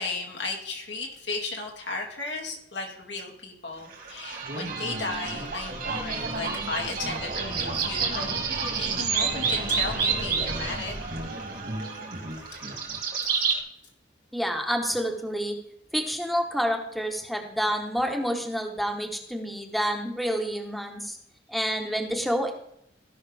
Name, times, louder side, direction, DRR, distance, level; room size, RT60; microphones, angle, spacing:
voice 1, 0.0-8.4 8.7-10.9, left 3 dB, 90° left, 0 dB, 2.3 m, -35 dB
sound 1, 3.9-13.6, right 5 dB, 55° right, 2.5 m, -29 dB
voice 2, 14.3-15.6 15.9-21.2 21.5-22.5, equal, ahead, 3 dB, 1.1 m, -28 dB
16.5 x 5.8 x 3.5 m, 0.73 s
head